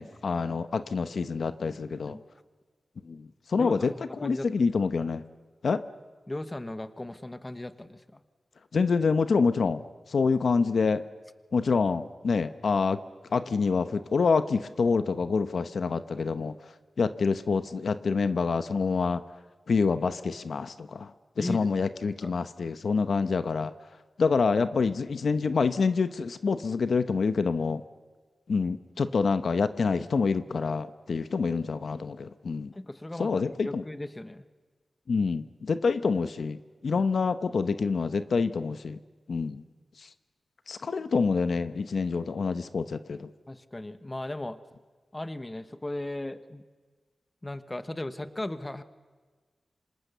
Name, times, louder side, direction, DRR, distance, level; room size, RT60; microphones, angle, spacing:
voice 1, 0.0-2.2 3.0-5.2 5.6-5.8 8.7-11.0 11.5-13.0 13.3-16.5 17.0-19.2 19.7-23.7 24.2-27.8 28.5-32.7 33.2-33.8 35.1-36.6 36.8-39.0 39.3-39.6 40.0-40.1 40.7-43.3, left 4 dB, 65° left, 11 dB, 0.9 m, -27 dB
voice 2, 3.5-4.5 6.3-8.2 21.4-21.7 22.2-22.3 32.7-34.4 36.9-37.0 43.5-44.6 45.1-46.6 47.4-48.8, left 1 dB, 15° left, 11 dB, 1.1 m, -37 dB
27.5 x 26.5 x 6.8 m, 1.4 s
wide cardioid pair, 125°, 0 cm